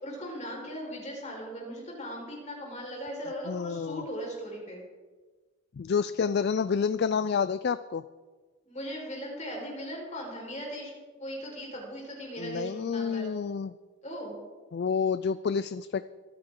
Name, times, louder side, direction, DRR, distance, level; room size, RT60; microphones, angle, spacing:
voice 1, 0.0-4.8 8.6-10.9 11.2-13.2 14.0-14.4, equal, 30° left, -2 dB, 4.8 m, -38 dB
voice 2, 3.5-4.0 5.8-8.0 12.4-13.7 14.7-16.1, left 6 dB, 50° left, 14 dB, 0.3 m, -29 dB
25.0 x 9.7 x 3.8 m, 1.4 s
head